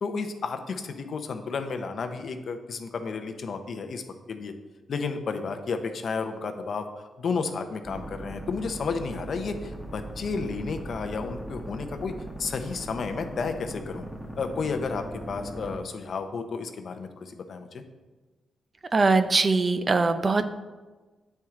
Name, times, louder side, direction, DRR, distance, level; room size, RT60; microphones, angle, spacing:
voice 1, 0.0-4.0 4.3-4.5 4.9-12.1 12.4-14.1 14.4-17.8, left 4 dB, 60° left, 6 dB, 0.6 m, -32 dB
sound 1, 7.8-15.8, right 1 dB, 5° right, 1.1 m, -39 dB
voice 2, 18.9-20.5, right 3 dB, 35° right, 10 dB, 0.4 m, -22 dB
8.5 x 4.5 x 3.7 m, 1.3 s
cardioid pair, 105°, 0 cm